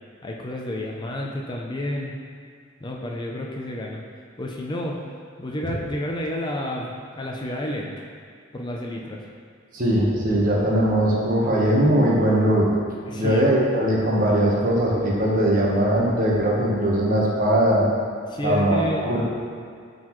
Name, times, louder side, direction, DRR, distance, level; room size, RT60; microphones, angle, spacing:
voice 1, 0.2-2.1 2.8-4.0 4.4-5.0 5.4-8.1 8.5-9.2 13.1-13.5 18.3-19.1, left 1 dB, 20° left, -1 dB, 0.5 m, -30 dB
voice 2, 9.7-12.7 13.1-17.9 18.4-19.2, right 1 dB, 45° right, -3 dB, 1.2 m, -20 dB
11.5 x 4.0 x 3.1 m, 2.1 s
head